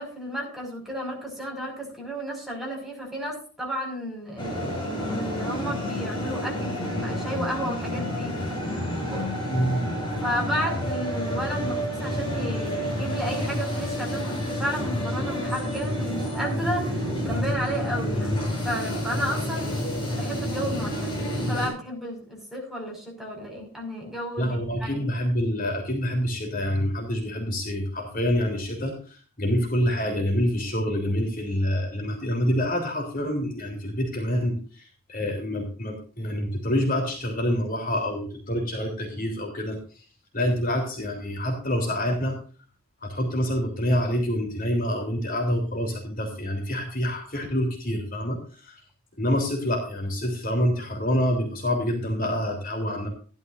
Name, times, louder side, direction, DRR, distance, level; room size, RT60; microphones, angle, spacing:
voice 1, 0.0-9.2 10.2-19.7 20.1-25.0, equal, ahead, -1 dB, 5.6 m, -33 dB
sound 1, 4.4-21.7, equal, 20° left, 7.4 m, -29 dB
voice 2, 9.5-9.8 24.4-39.8 40.3-42.4 43.0-48.8 49.2-53.1, equal, 40° left, 1 dB, 3.5 m, -27 dB
16.0 x 12.5 x 2.6 m, 0.39 s
head